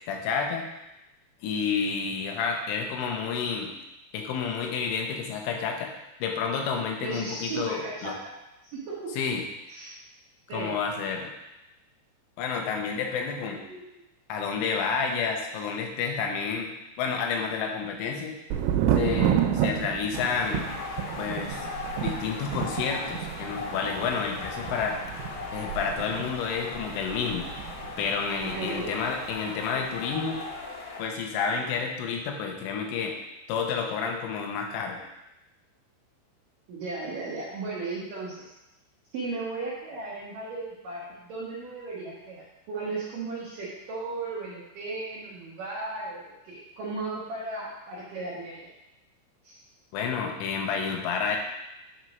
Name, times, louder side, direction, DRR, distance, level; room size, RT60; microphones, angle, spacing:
voice 1, 0.1-0.7 1.4-3.7 4.1-5.9 6.2-8.1 9.2-9.4 10.5-11.3 12.4-13.6 14.3-16.7 17.0-18.3 18.9-20.7 21.2-21.7 22.0-25.0 25.5-27.5 28.0-30.4 31.0-33.2 33.5-35.0 49.9-51.4, left 6 dB, 85° left, 2 dB, 3.6 m, -30 dB
voice 2, 7.0-8.3 8.6-9.2 9.7-9.9 10.5-11.0 13.7-13.8 28.4-28.9 36.7-38.5 39.1-48.6 49.4-49.6, right 3 dB, 70° right, -6 dB, 2.1 m, -36 dB
Thunder, 18.5-28.2 28.4-29.1, right 10 dB, 90° right, 3.2 m, -30 dB
sound 1, 20.1-31.0, left 3 dB, 60° left, 2.7 m, -38 dB
9.4 x 4.5 x 5.2 m, 0.93 s
omnidirectional pair, 5.5 m